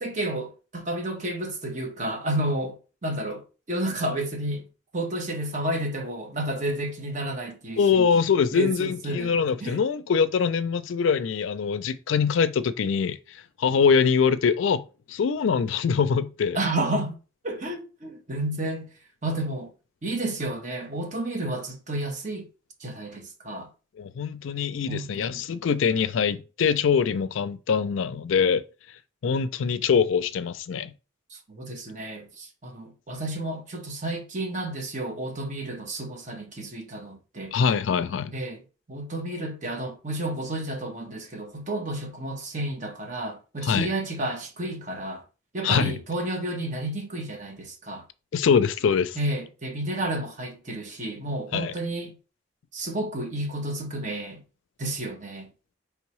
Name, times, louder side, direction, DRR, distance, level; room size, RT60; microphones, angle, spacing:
voice 1, 0.0-4.6 4.9-8.1 8.5-9.8 16.5-17.1 17.4-18.9 19.2-19.7 20.0-22.5 22.8-23.7 24.9-25.4 31.5-37.5 38.3-38.6 38.9-45.2 45.5-48.0 49.2-52.1 52.7-54.4 54.8-55.5, right 1 dB, 40° right, 1.0 m, -31 dB
voice 2, 7.8-16.6 24.0-28.6 29.2-30.9 37.5-38.3 43.6-43.9 45.6-46.0 48.3-49.2 51.5-51.7, left 6 dB, 75° left, 0.4 m, -23 dB
4.6 x 3.3 x 3.1 m
head